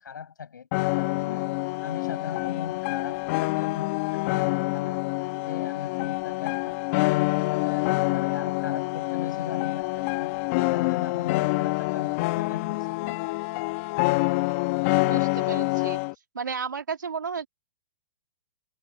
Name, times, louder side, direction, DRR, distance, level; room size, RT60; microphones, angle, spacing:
voice 1, 0.0-1.5 1.8-5.0 5.5-7.3 7.6-13.3, left 7 dB, 80° left, 5.8 m, -39 dB
sound 1, 0.7-16.1, left 24 dB, 45° left, 1.4 m, -26 dB
voice 2, 15.0-16.0 16.3-17.5, right 6 dB, 90° right, 3.3 m, -33 dB
hypercardioid pair, 125°, 10 cm